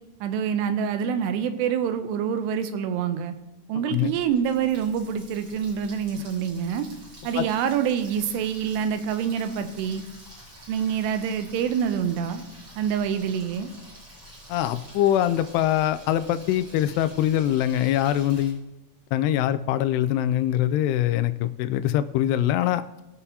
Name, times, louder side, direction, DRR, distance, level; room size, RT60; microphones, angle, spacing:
voice 1, 0.2-3.3 3.7-6.9 7.2-10.0 10.7-12.4 12.8-13.7, right 8 dB, 85° right, 9 dB, 2.8 m, -26 dB
Water tap faucet, 4.1-18.5, equal, 30° right, 3.7 m, -48 dB
voice 2, 14.5-18.7 19.1-22.8, left 12 dB, 85° left, 11 dB, 2.6 m, -23 dB
20.5 x 6.9 x 2.8 m, 1.0 s
omnidirectional pair, 4.8 m